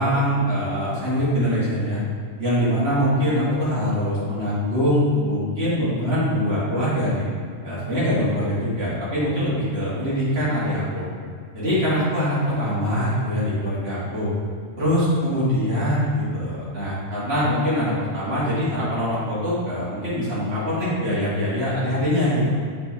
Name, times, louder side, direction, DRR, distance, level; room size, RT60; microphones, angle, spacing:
voice 1, 0.0-2.0 2.4-7.3 7.6-11.0 11.5-14.3 14.8-22.5, equal, 50° right, -10 dB, 2.4 m, -23 dB
7.2 x 4.6 x 4.6 m, 2.1 s
omnidirectional pair, 1.3 m